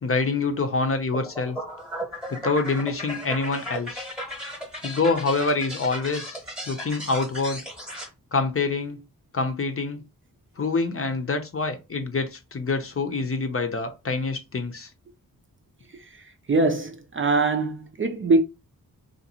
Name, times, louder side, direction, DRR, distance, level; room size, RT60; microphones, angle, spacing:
voice 1, 0.0-1.6 2.3-4.1 4.8-7.6 8.3-9.0 9.3-10.0 10.6-14.9, left 3 dB, 40° left, 0.6 m, -26 dB
sound 1, 1.1-8.1, equal, ahead, 1.0 m, -36 dB
voice 2, 16.5-18.4, right 3 dB, 35° right, 0.4 m, -22 dB
2.6 x 2.5 x 2.8 m
cardioid pair, 55°, 36 cm